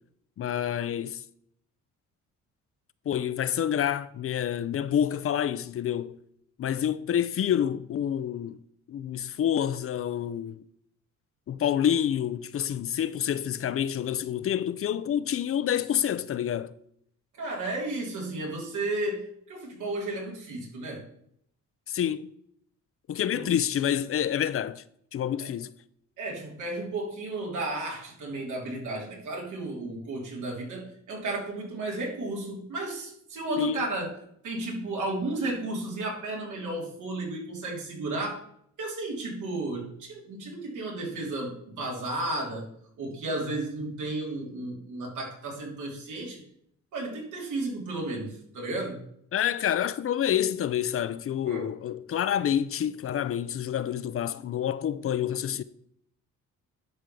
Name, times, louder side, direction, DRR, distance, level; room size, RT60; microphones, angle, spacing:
voice 1, 0.4-1.2 3.1-6.2 6.6-8.6 8.9-10.6 11.5-16.7 21.9-22.3 23.1-24.8 25.1-25.7 33.6-33.9 49.3-55.6, left 10 dB, 50° left, 0.5 m, -28 dB
voice 2, 17.3-21.0 23.3-23.5 25.4-25.5 26.2-34.1 34.4-38.4 38.8-42.6 43.0-46.4 46.9-49.0 51.5-51.6, right 2 dB, 80° right, 3.3 m, -33 dB
10.5 x 3.6 x 6.8 m
cardioid pair, 90°, 30 cm